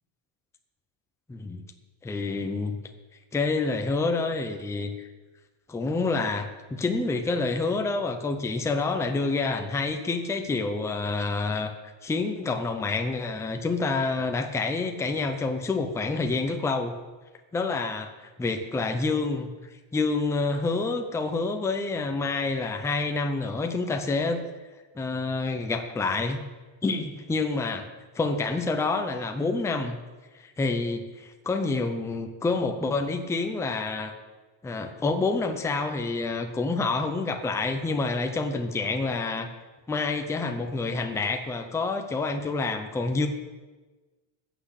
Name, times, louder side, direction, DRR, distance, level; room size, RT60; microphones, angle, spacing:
voice 1, 1.3-1.6 2.0-2.8 3.3-5.1 5.7-11.7 12.0-17.0 17.5-19.5 19.9-24.4 25.0-26.4 26.8-27.9 28.1-30.0 30.3-34.1 34.6-39.5 39.9-43.3, left 3 dB, 5° left, 5 dB, 0.6 m, -28 dB
14.5 x 6.0 x 8.4 m, 1.2 s
cardioid pair, 175°, 50 cm